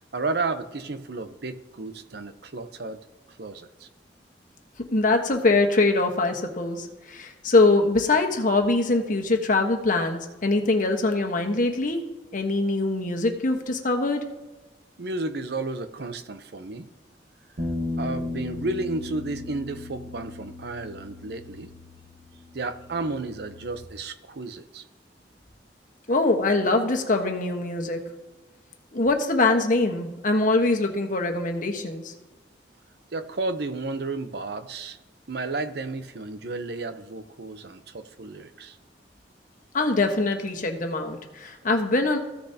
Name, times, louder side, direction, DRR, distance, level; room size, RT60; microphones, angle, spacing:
voice 1, 0.1-3.0 3.4-3.9 15.0-16.9 18.0-21.7 22.5-24.8 33.1-35.0 35.3-38.8, right 3 dB, 65° right, 10 dB, 0.8 m, -32 dB
voice 2, 4.9-12.0 12.3-14.2 26.1-28.0 28.9-32.1 39.7-42.2, left 2 dB, 50° left, 4 dB, 1.3 m, -23 dB
sound 1, 17.6-23.8, left 2 dB, 50° right, 1.3 m, -36 dB
15.0 x 6.7 x 2.8 m, 1.2 s
head